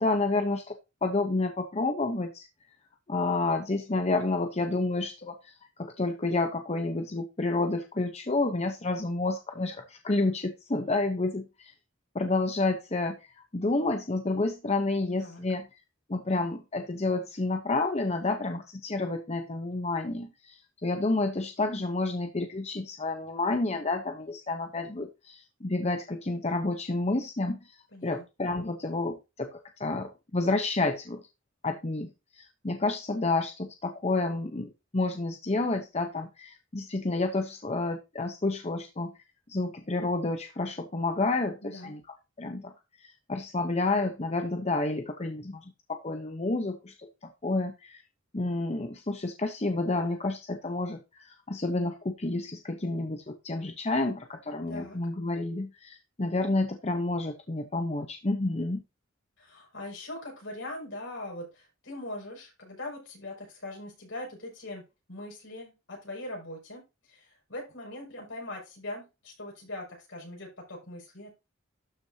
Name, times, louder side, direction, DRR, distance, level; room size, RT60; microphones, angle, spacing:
voice 1, 0.0-2.5 3.1-11.7 12.1-15.7 16.1-31.2 31.6-39.1 39.5-42.0 42.4-42.7 43.0-48.0 48.3-58.8, left 2 dB, 30° left, 6 dB, 0.9 m, -30 dB
voice 2, 27.9-28.2 41.6-41.9 54.7-55.0 59.4-71.3, left 1 dB, 70° left, 0 dB, 6.2 m, -41 dB
12.5 x 6.1 x 2.8 m, 0.26 s
head